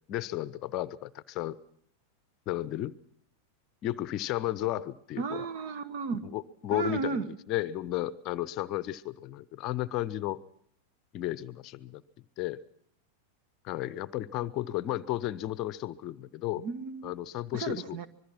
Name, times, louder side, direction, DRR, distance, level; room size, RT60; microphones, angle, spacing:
voice 1, 0.1-1.6 2.5-3.0 3.8-5.5 6.3-10.4 11.1-12.0 12.4-12.6 13.6-16.6 17.0-18.1, left 15 dB, 40° left, 18 dB, 0.8 m, -33 dB
voice 2, 5.2-6.2 6.7-7.3 16.6-17.1 17.5-18.1, right 5 dB, 45° right, 13 dB, 1.7 m, -34 dB
25.5 x 21.5 x 5.9 m, 0.71 s
figure-of-eight pair, 90°, 0 cm